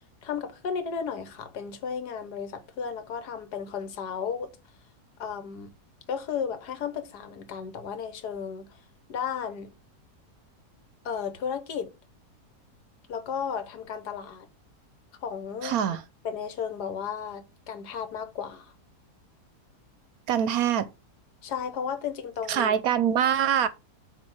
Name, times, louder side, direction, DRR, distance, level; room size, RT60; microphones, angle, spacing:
voice 1, 0.2-4.5 5.2-5.7 6.1-8.7 9.1-9.7 11.0-11.9 13.1-14.5 15.2-15.8 16.2-18.7 21.4-22.7, left 7 dB, 75° left, 1.6 m, -34 dB
voice 2, 15.6-16.0 20.3-20.9 22.5-23.7, right 9 dB, 70° right, 1.0 m, -24 dB
8.1 x 2.8 x 6.1 m
omnidirectional pair, 1.8 m